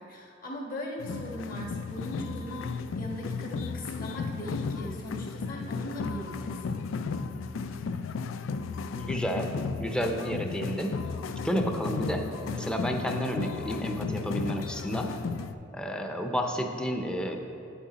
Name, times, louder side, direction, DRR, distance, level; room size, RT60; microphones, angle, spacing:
voice 1, 0.0-6.6, equal, 50° left, -1 dB, 1.5 m, -39 dB
sound 1, 1.0-15.5, left 5 dB, 80° left, 0.4 m, -34 dB
voice 2, 8.9-10.9 11.4-15.1 15.7-17.4, equal, 5° left, 4 dB, 0.6 m, -31 dB
9.6 x 7.7 x 4.2 m, 2.8 s
head